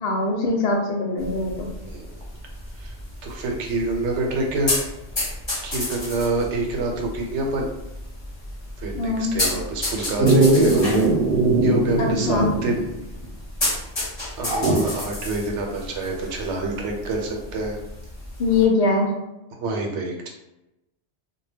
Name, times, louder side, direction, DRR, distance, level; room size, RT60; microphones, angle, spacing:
voice 1, 0.0-1.7 9.0-9.3 12.0-12.5 18.4-19.1, left 3 dB, 65° left, 1 dB, 0.8 m, -22 dB
sound 1, 1.2-18.6, left 1 dB, 25° left, 0.7 m, -32 dB
voice 2, 1.8-2.3 2.8-2.9 3.2-4.9 5.6-7.7 8.8-10.8 11.6-12.9 14.4-17.8 19.5-20.3, right 2 dB, 85° right, 0 dB, 0.9 m, -27 dB
Dog, 10.2-12.9 13.2-13.3 14.4-15.0 17.1-17.2, right 2 dB, 60° right, 0.8 m, -19 dB
2.1 x 2.1 x 3.3 m, 0.95 s
omnidirectional pair, 1.2 m